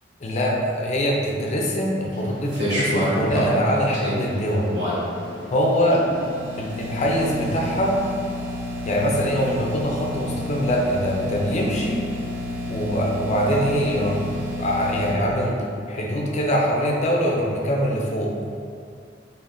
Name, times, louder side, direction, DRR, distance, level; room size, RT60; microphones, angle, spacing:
voice 1, 0.2-4.7 5.5-6.0 6.6-7.9 8.8-12.0 12.7-14.2 14.6-15.6 15.9-18.3, equal, 40° left, -1 dB, 0.4 m, -23 dB
sound 1, 2.1-15.1, left 1 dB, 85° right, 1.1 m, -30 dB
3.4 x 2.4 x 2.5 m, 2.3 s
head